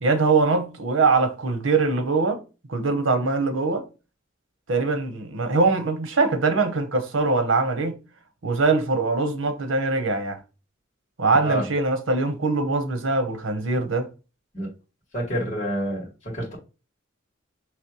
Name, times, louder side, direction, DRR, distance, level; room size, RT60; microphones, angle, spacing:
voice 1, 0.0-2.4 2.7-3.8 4.7-8.0 8.4-10.4 11.2-14.1, right 3 dB, 90° right, 0.9 m, -22 dB
voice 2, 11.3-11.6 14.5-14.7 15.1-16.5, right 1 dB, 40° left, 1.9 m, -28 dB
5.1 x 3.1 x 3.0 m
head